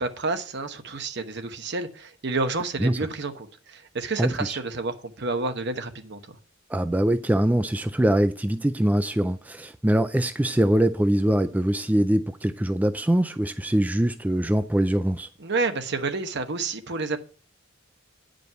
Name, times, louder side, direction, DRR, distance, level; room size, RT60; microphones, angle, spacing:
voice 1, 0.0-6.2 15.4-17.2, right 3 dB, 60° right, 1.1 m, -29 dB
voice 2, 4.2-4.6 6.7-15.3, right 1 dB, 10° right, 0.4 m, -23 dB
9.5 x 5.2 x 5.6 m
head